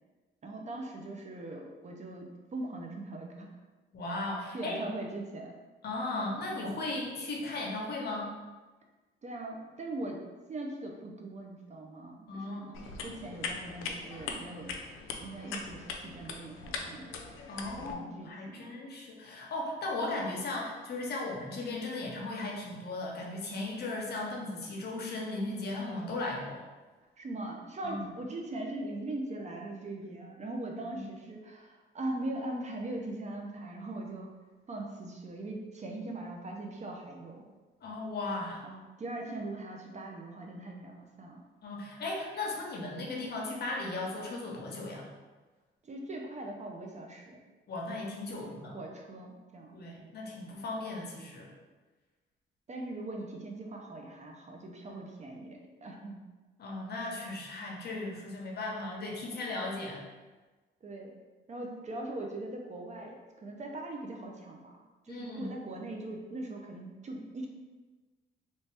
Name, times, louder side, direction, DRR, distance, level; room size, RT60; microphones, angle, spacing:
voice 1, 0.4-3.5 4.5-5.5 9.2-10.2 10.5-14.7 15.2-17.1 17.8-18.7 27.2-34.3 34.7-37.4 38.6-41.4 45.8-47.4 48.3-49.8 52.7-56.2 60.8-61.1 61.5-64.8 65.0-67.5, right 2 dB, 35° right, 1 dB, 0.6 m, -40 dB
voice 2, 3.9-4.7 5.8-8.3 12.3-12.7 17.5-26.6 27.8-28.0 30.9-31.1 37.8-38.6 41.6-45.1 47.7-48.7 49.7-51.5 54.9-55.0 56.6-60.0 65.1-65.5, left 2 dB, 55° left, -2 dB, 0.9 m, -36 dB
sound 1, 12.7-17.9, left 4 dB, 90° left, 0.4 m, -41 dB
3.1 x 2.8 x 3.3 m, 1.3 s
cardioid pair, 90°, 20 cm